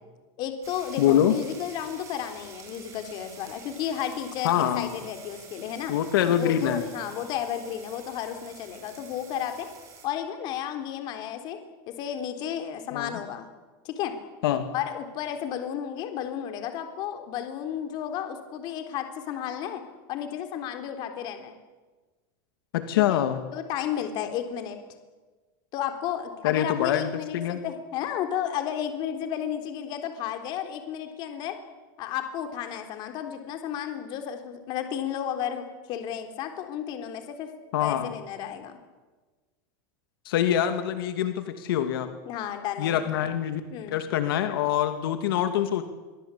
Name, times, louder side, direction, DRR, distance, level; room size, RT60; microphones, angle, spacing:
voice 1, 0.4-5.9 6.3-9.7 10.0-11.6 11.9-13.5 13.8-14.1 14.7-19.8 20.1-21.5 23.1-23.2 23.5-24.8 25.7-31.5 32.0-37.5 37.8-38.7 42.3-43.2 43.7-44.0, left 9 dB, 40° left, 6 dB, 3.8 m, -33 dB
sound 1, 0.6-10.1, right 6 dB, 25° right, 6.6 m, -48 dB
voice 2, 1.0-1.4 4.4-4.9 5.9-6.8 12.9-13.2 14.4-14.7 22.7-23.4 26.4-27.6 37.7-38.1 40.2-42.1 42.8-43.6 43.9-45.8, left 10 dB, 85° left, 8 dB, 2.5 m, -25 dB
27.0 x 23.5 x 8.6 m, 1.3 s
supercardioid pair, 170°, 12 cm